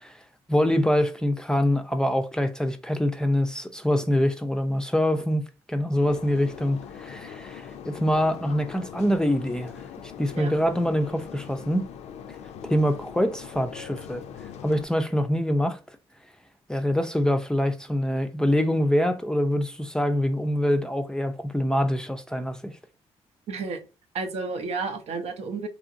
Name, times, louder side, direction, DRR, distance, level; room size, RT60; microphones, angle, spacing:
voice 1, 0.5-5.4 5.7-9.8 10.2-11.9 12.7-14.2 14.6-15.8 16.7-22.7, equal, 5° left, 0.4 m, -24 dB
sound 1, 5.9-14.8, left 8 dB, 75° left, 0.4 m, -41 dB
voice 2, 23.5-23.8 24.1-25.7, right 4 dB, 70° right, 0.7 m, -31 dB
3.0 x 2.5 x 2.5 m
cardioid pair, 75°, 11 cm